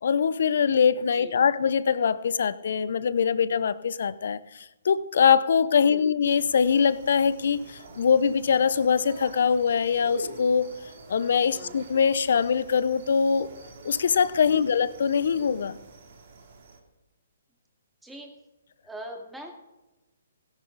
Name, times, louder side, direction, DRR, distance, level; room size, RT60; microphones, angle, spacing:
voice 1, 0.0-10.7 11.1-13.5 13.8-15.8, left 6 dB, 65° left, 16 dB, 0.7 m, -23 dB
sound 1, 6.2-16.8, right 3 dB, 65° right, 3.1 m, -46 dB
voice 2, 18.0-18.3 18.8-19.5, right 1 dB, 5° right, 2 dB, 2.2 m, -42 dB
17.0 x 10.5 x 4.0 m, 1.0 s
hypercardioid pair, 140°, 0 cm